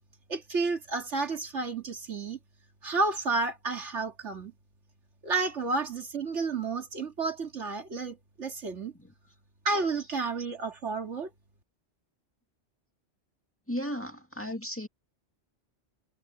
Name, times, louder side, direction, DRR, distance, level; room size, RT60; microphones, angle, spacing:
voice 1, 0.3-2.4 2.8-4.5 5.2-8.9 9.6-11.3, right 3 dB, 80° right, 2.6 m, -31 dB
voice 2, 13.7-14.9, equal, 10° left, 2.0 m, -35 dB
omnidirectional pair, 1.2 m